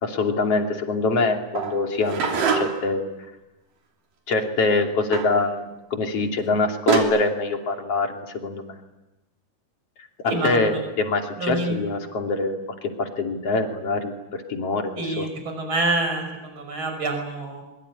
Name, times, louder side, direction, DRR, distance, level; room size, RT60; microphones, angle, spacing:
voice 1, 0.0-3.0 4.3-8.8 10.2-15.3, left 3 dB, 50° left, 3 dB, 3.6 m, -24 dB
sound 1, 1.6-2.9 5.1-5.4 6.4-6.5 6.9-7.0, right 6 dB, 85° right, 4.8 m, -24 dB
voice 2, 10.2-10.8 11.4-11.7 15.0-17.6, right 2 dB, 35° right, 5 dB, 6.5 m, -27 dB
24.0 x 23.0 x 9.9 m, 1.0 s
omnidirectional pair, 3.7 m